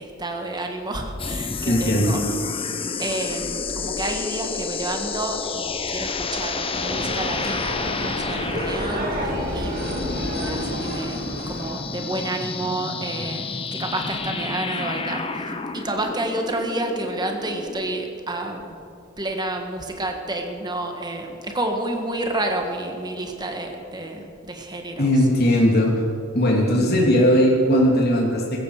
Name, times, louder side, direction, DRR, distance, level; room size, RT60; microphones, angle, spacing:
voice 1, 0.0-2.2 3.0-10.2 10.5-11.2 11.5-18.8 19.2-25.1, right 1 dB, 20° right, 3 dB, 1.6 m, -30 dB
sound 1, 1.2-18.0, left 4 dB, 30° left, 0.8 m, -30 dB
voice 2, 1.7-2.1 25.0-25.9 26.3-28.6, equal, 50° left, -2 dB, 3.0 m, -18 dB
sound 2, 6.7-11.7, equal, 50° right, 3.1 m, -30 dB
16.0 x 14.5 x 5.0 m, 2.4 s
head